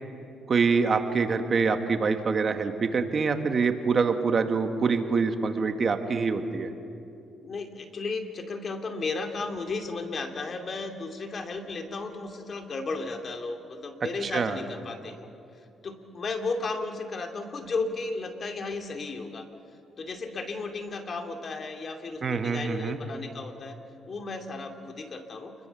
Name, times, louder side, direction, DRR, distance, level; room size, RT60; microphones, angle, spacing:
voice 1, 0.5-6.7 14.2-14.6 22.2-23.0, right 5 dB, 45° right, 7 dB, 1.7 m, -25 dB
voice 2, 7.4-15.2 15.8-19.5 20.0-23.8 24.1-25.6, left 3 dB, 45° left, 5 dB, 2.5 m, -34 dB
28.5 x 21.5 x 7.0 m, 2.6 s
cardioid pair, 90°, 0 cm